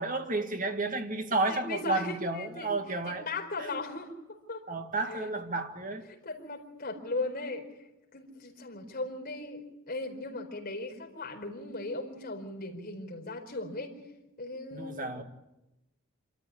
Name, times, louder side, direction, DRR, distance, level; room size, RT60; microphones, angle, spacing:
voice 1, 0.0-3.3 3.6-3.7 4.7-6.1 14.7-15.2, right 2 dB, 40° right, 2.0 m, -32 dB
voice 2, 1.5-2.7 3.0-4.6 5.1-5.3 6.1-7.6 8.1-13.9 14.4-15.2, left 2 dB, 45° left, 4.6 m, -38 dB
27.0 x 13.5 x 9.9 m
head